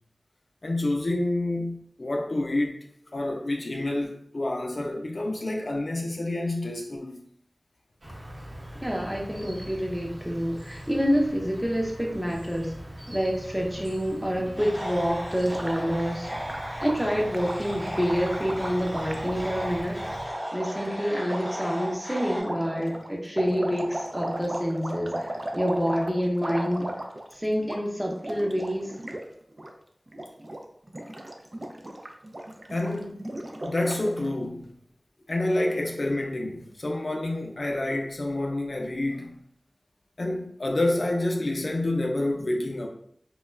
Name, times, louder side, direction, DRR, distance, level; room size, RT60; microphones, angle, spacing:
voice 1, 0.6-2.8 3.1-7.2 32.7-33.3 33.6-34.7 35.3-39.4 40.2-42.9, left 1 dB, 70° left, 0.4 m, -28 dB
Insect, 8.0-20.3, right 1 dB, 70° right, 0.9 m, -42 dB
voice 2, 8.8-12.7 13.1-16.3 16.8-20.0 20.5-26.9 27.3-28.9, equal, 10° right, 0.6 m, -27 dB
sound 1, 14.6-22.4, equal, 35° right, 1.0 m, -36 dB
Gurgling, 15.3-19.9 20.6-20.7 21.2-21.6 22.4-27.3 27.6-27.8 28.1-29.2 29.5-29.7 30.1-30.6 30.9-34.3, right 1 dB, 50° right, 0.4 m, -36 dB
2.2 x 2.2 x 3.1 m
wide cardioid pair, 40°, 0 cm